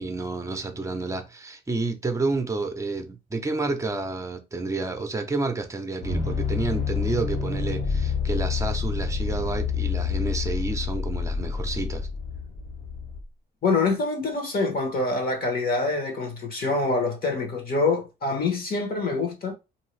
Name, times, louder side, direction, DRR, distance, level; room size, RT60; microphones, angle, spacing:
voice 1, 0.0-12.1, right 3 dB, 15° right, 0.7 m, -30 dB
sound 1, 6.0-13.2, left 5 dB, 65° left, 1.3 m, -28 dB
voice 2, 13.6-19.5, left 3 dB, 50° left, 1.1 m, -25 dB
2.7 x 2.3 x 3.2 m
cardioid pair, 90°, 20 cm